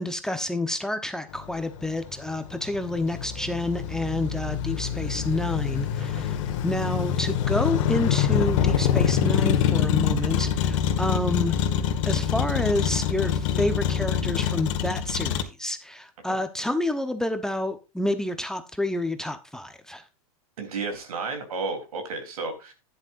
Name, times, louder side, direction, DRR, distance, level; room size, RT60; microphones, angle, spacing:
voice 1, 0.0-6.4 6.6-11.6 12.1-20.0, left 1 dB, 5° left, 1.0 m, -29 dB
Motor vehicle (road), 1.4-15.4, left 8 dB, 60° left, 1.8 m, -25 dB
voice 2, 20.6-22.7, right 4 dB, 80° right, 3.6 m, -33 dB
11.5 x 10.5 x 2.6 m
hypercardioid pair, 120°, 18 cm